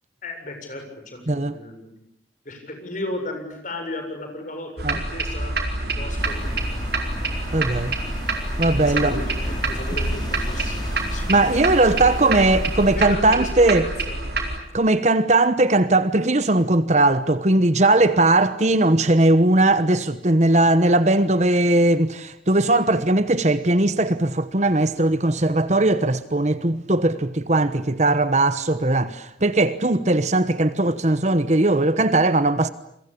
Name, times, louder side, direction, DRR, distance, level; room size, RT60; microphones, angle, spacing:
voice 1, 0.2-2.0 2.5-5.6 5.9-6.5 8.8-12.3 12.9-14.4, left 1 dB, 40° left, 7.3 m, -35 dB
voice 2, 1.3-1.6 4.8-5.0 7.5-7.9 8.6-9.2 11.3-13.9 14.7-32.7, right 2 dB, 35° right, 1.1 m, -19 dB
sound 1, 4.8-14.6, right 2 dB, 55° right, 4.6 m, -27 dB
sound 2, 6.2-13.0, equal, 20° left, 5.4 m, -32 dB
29.0 x 23.0 x 8.7 m
head